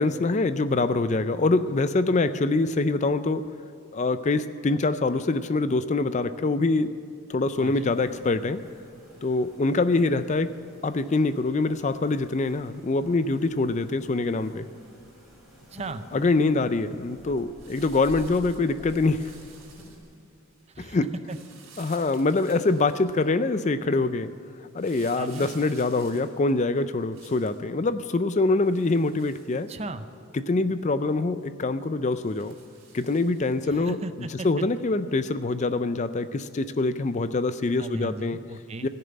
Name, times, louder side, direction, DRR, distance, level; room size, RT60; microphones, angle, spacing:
voice 1, 0.0-3.4 3.9-6.9 7.3-8.6 9.2-10.5 10.8-14.7 16.1-19.3 20.8-21.1 21.8-24.3 24.7-29.7 30.3-32.5 32.9-34.0 34.4-38.4 38.8-38.9, left 3 dB, 35° left, 12 dB, 0.4 m, -24 dB
sound 1, 7.4-20.0, equal, ahead, 3.3 m, -50 dB
voice 2, 7.6-7.9 15.6-16.0 20.7-21.4 25.2-25.5 29.7-30.1 33.6-34.7 37.8-38.9, right 2 dB, 30° right, 11 dB, 0.5 m, -36 dB
sound 2, 17.6-20.2 21.2-23.3 24.8-27.6 28.5-30.1 30.6-30.7 31.1-31.2 32.1-33.7 34.6-34.7, right 5 dB, 70° right, 4.3 m, -52 dB
16.0 x 6.8 x 9.8 m, 2.6 s
head